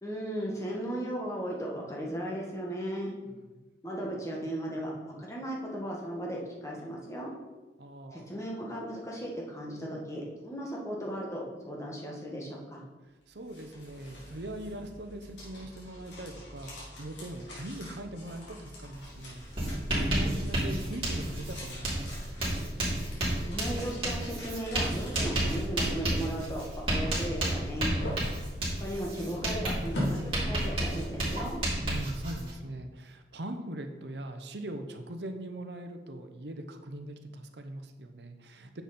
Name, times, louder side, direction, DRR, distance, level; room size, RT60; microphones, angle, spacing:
voice 1, 0.0-3.1 3.8-7.3 8.1-12.8 23.4-27.9 28.8-31.6, right 1 dB, 15° left, -2 dB, 1.8 m, -36 dB
voice 2, 3.3-3.6 7.8-8.3 13.3-19.5 19.9-22.2 28.1-28.3 31.8-38.8, right 1 dB, 75° right, 6 dB, 0.9 m, -41 dB
sound 1, 13.2-31.2, equal, 85° left, 3.5 m, -44 dB
Writing, 19.0-19.1 19.4-32.5, right 1 dB, 30° right, 3.0 m, -31 dB
9.5 x 7.1 x 4.3 m, 1.2 s
head